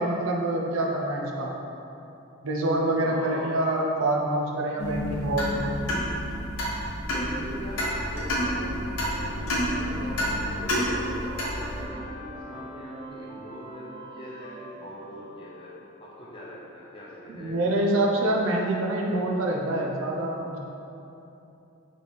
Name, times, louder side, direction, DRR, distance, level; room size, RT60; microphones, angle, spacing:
voice 1, 0.0-1.5 2.4-5.6 17.3-20.6, right 1 dB, 70° right, -1 dB, 0.6 m, -26 dB
voice 2, 3.0-3.6 7.1-9.1 9.7-15.7 16.0-17.7, equal, 25° left, -7 dB, 0.6 m, -42 dB
sound 1, 4.8-11.9, equal, 90° left, 1.0 m, -29 dB
sound 2, 8.8-15.8, right 1 dB, 30° right, 0.9 m, -44 dB
4.1 x 3.3 x 3.5 m, 2.9 s
head